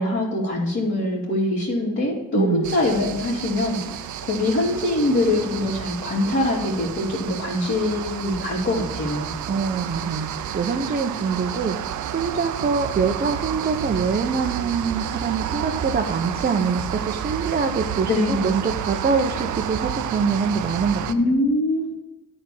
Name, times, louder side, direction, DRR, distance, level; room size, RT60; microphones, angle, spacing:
voice 1, 0.0-3.8 4.3-9.4 18.1-18.5 21.1-21.9, left 1 dB, 45° left, -7 dB, 2.9 m, -23 dB
voice 2, 2.3-2.7 9.5-11.8 12.1-21.1, right 5 dB, 30° right, 2 dB, 0.9 m, -24 dB
sound 1, 2.6-21.1, right 10 dB, 75° right, 0.7 m, -31 dB
10.5 x 4.4 x 7.1 m, 1.0 s
cardioid pair, 105°, 30 cm